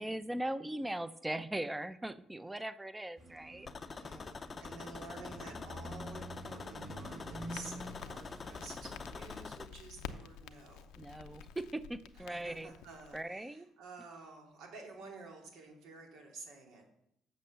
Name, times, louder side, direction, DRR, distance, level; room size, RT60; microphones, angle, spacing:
voice 1, 0.0-4.0 11.0-12.7 13.1-13.7, right 1 dB, 10° right, 14 dB, 0.6 m, -39 dB
sound 1, 3.2-9.2, right 1 dB, 45° right, 3.8 m, -48 dB
sound 2, 3.7-9.7, left 4 dB, 30° left, 0.6 m, -46 dB
voice 2, 3.9-10.9 12.1-16.8, right 3 dB, 80° right, 1 dB, 2.7 m, -51 dB
Crackle, 7.5-13.2, left 8 dB, 90° left, 0.6 m, -50 dB
8.2 x 6.5 x 6.9 m, 0.74 s
cardioid pair, 100°, 0 cm